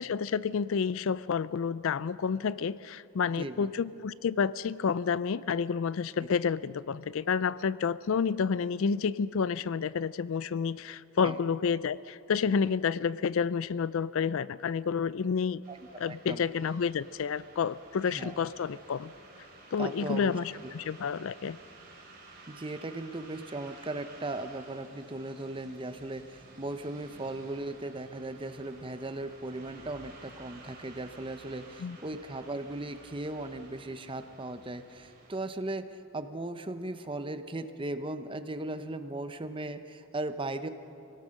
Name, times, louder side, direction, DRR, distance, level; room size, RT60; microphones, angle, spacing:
voice 1, 0.0-15.6 16.0-19.1 19.7-21.6 31.8-32.0, left 6 dB, 60° left, 19 dB, 0.4 m, -30 dB
voice 2, 3.4-3.7 11.2-11.4 15.7-15.8 16.0-16.4 18.1-18.4 19.8-20.3 22.5-40.7, right 2 dB, 25° right, 9 dB, 0.8 m, -37 dB
sound 1, 15.6-35.4, right 2 dB, 40° right, 4.6 m, -53 dB
24.5 x 18.0 x 6.5 m, 2.7 s
head